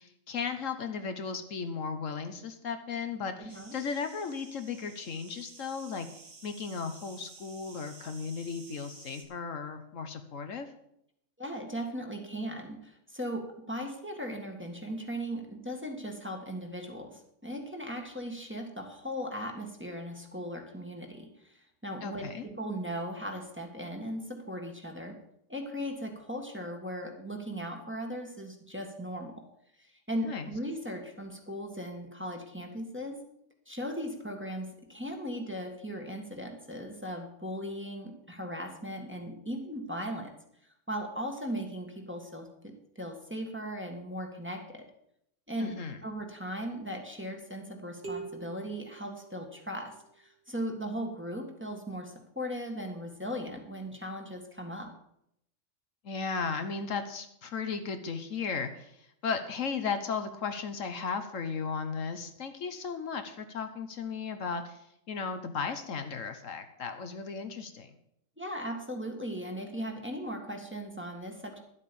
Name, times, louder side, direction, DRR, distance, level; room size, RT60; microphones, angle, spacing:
voice 1, 0.0-6.1 6.4-10.7 22.0-22.5 30.2-30.5 45.6-46.0 56.0-59.0 59.2-68.0, left 5 dB, 70° left, 8 dB, 1.4 m, -35 dB
voice 2, 3.4-3.8 11.4-25.2 25.5-29.3 29.8-33.2 33.7-40.3 40.9-44.9 45.5-45.8 46.0-54.9 68.4-71.6, equal, 10° right, 1 dB, 1.8 m, -38 dB
sound 1, 3.5-9.2, right 4 dB, 90° right, 2.1 m, -53 dB
sound 2, 48.0-49.9, right 4 dB, 50° right, 2.6 m, -44 dB
11.5 x 8.2 x 7.0 m, 0.75 s
omnidirectional pair, 1.4 m